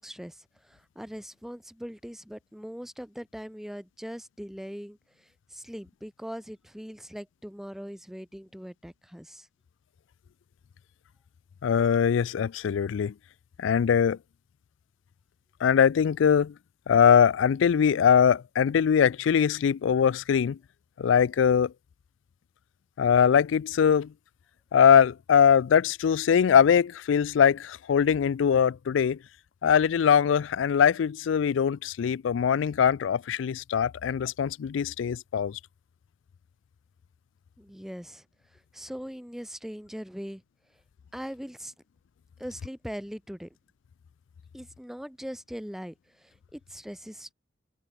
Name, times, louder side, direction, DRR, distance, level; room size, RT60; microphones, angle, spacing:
voice 1, 0.0-9.5 37.6-38.3 38.5-40.4 41.1-41.7 42.4-43.6 44.5-47.3, equal, ahead, 1.0 m, -41 dB
voice 2, 11.6-13.1 13.6-14.2 15.6-16.5 16.9-20.6 21.0-21.7 23.0-24.1 24.7-29.2 29.6-35.6, left 7 dB, 70° left, 0.3 m, -22 dB
head